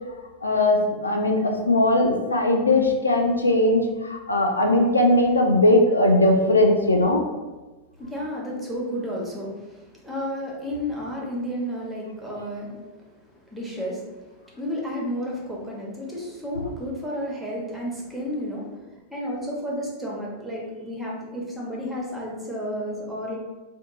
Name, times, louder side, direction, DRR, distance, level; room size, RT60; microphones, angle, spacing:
voice 1, 0.4-7.2, left 1 dB, 80° left, 2 dB, 0.4 m, -19 dB
voice 2, 8.0-23.4, equal, 5° right, -3 dB, 0.9 m, -32 dB
2.8 x 2.3 x 3.6 m, 1.2 s
figure-of-eight pair, 90°, 0 cm